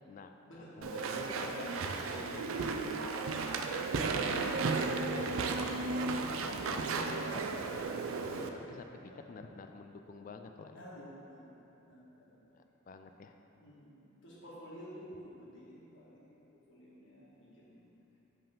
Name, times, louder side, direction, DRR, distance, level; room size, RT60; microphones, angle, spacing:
voice 1, 0.1-2.9 6.6-7.7 8.2-10.8 12.5-13.3, left 3 dB, 40° left, 6 dB, 0.3 m, -49 dB
Walk footsteps / Chatter / Squeak, 0.8-8.5, right 4 dB, 85° right, 0.4 m, -34 dB
voice 2, 4.0-7.1 9.0-9.3 10.7-12.5 13.5-16.4 16.7-17.9, equal, 65° left, -7 dB, 1.4 m, -51 dB
5.4 x 3.6 x 5.7 m, 2.9 s
head